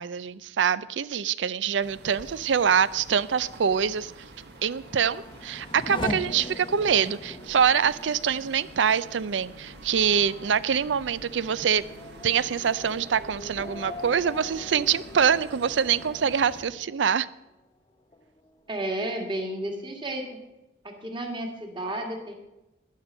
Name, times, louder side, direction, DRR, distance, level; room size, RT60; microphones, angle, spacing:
voice 1, 0.0-4.1 4.6-11.8 12.2-17.3, right 7 dB, 85° right, 18 dB, 0.5 m, -25 dB
sound 1, 1.8-16.6, right 1 dB, 65° right, 1.6 m, -47 dB
Race car auto racing / Accelerating revving vroom, 4.5-17.7 18.1-18.8, left 1 dB, 25° left, 0.7 m, -41 dB
voice 2, 18.7-20.3 20.8-22.3, right 1 dB, 25° right, 3 dB, 1.8 m, -32 dB
12.0 x 10.5 x 5.4 m, 0.95 s
head